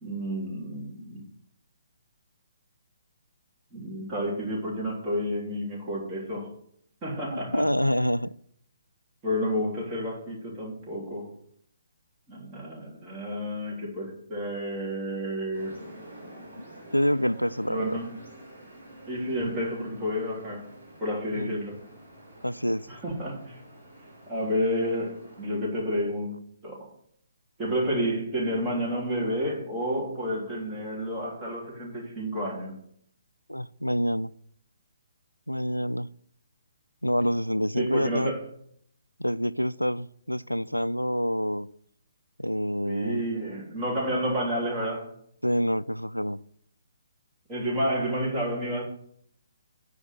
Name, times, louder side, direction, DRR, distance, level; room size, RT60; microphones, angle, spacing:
voice 1, 0.0-1.2 3.7-6.5 7.0-7.7 9.2-11.3 12.3-15.8 17.7-18.1 19.1-20.6 21.0-21.8 22.9-23.6 24.3-26.9 27.6-32.8 37.8-38.4 42.9-45.1 47.5-48.8, equal, 20° right, -4 dB, 3.4 m, -30 dB
voice 2, 7.5-8.3 16.9-18.0 21.3-21.5 22.4-22.9 33.5-34.3 35.5-36.1 37.0-38.3 39.2-41.7 42.4-43.2 45.4-46.4, equal, 90° left, 18 dB, 0.3 m, -27 dB
sound 1, 15.5-25.5, right 1 dB, 65° right, 3.2 m, -48 dB
9.6 x 5.0 x 8.0 m, 0.66 s
figure-of-eight pair, 135°, 0 cm